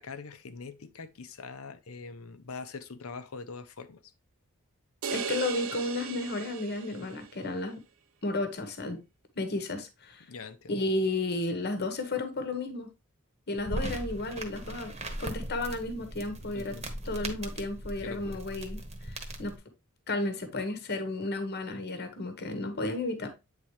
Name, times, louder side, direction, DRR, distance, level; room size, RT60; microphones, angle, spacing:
voice 1, 0.0-4.0 10.3-10.7 16.5-16.8 18.0-18.4, left 4 dB, 70° left, 0.7 m, -43 dB
sound 1, 5.0-7.4, right 6 dB, 70° right, 0.6 m, -37 dB
voice 2, 5.1-7.8 8.2-9.0 9.3-10.2 10.7-12.9 13.5-14.9 15.2-16.7 17.0-18.8 19.0-19.5 20.1-23.3, left 2 dB, 50° left, 1.1 m, -33 dB
sound 2, 13.6-19.6, right 1 dB, 30° right, 1.1 m, -39 dB
8.5 x 3.8 x 3.1 m
head